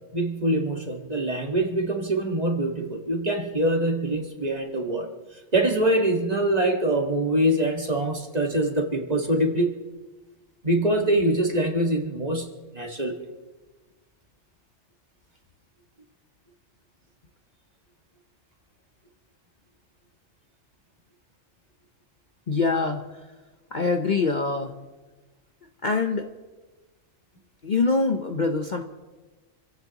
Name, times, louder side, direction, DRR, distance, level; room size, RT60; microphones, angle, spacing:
voice 1, 0.0-9.8 10.6-13.3, right 1 dB, 30° right, 2 dB, 1.8 m, -24 dB
voice 2, 22.5-23.2 23.7-24.8 25.8-26.3 27.6-28.9, left 4 dB, 40° left, 4 dB, 0.9 m, -24 dB
28.5 x 16.5 x 3.0 m, 1.2 s
omnidirectional pair, 1.4 m